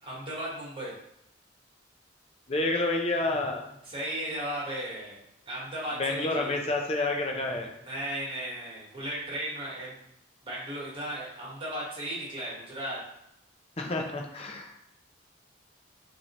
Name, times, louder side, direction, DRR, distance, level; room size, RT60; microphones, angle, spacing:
voice 1, 0.0-0.9 3.8-6.6 7.8-10.0 10.4-13.0, right 1 dB, 25° right, -6 dB, 1.5 m, -36 dB
voice 2, 2.5-3.6 6.0-7.7 13.8-14.9, left 2 dB, 30° left, 2 dB, 0.6 m, -29 dB
6.0 x 2.8 x 3.1 m, 0.77 s
head